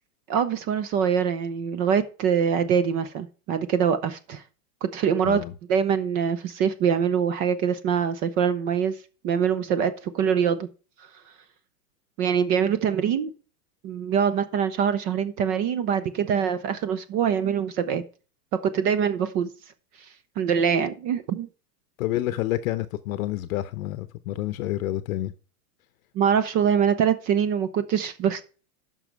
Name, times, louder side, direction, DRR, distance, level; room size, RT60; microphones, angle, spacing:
voice 1, 0.3-4.4 4.8-5.4 5.7-9.0 9.2-10.7 12.2-13.3 13.8-18.0 18.6-19.5 20.4-21.5 26.2-28.4, right 7 dB, 20° right, 0.3 m, -24 dB
voice 2, 22.0-25.3, left 14 dB, 60° left, 0.8 m, -28 dB
9.1 x 6.1 x 4.5 m
hypercardioid pair, 130°, 46 cm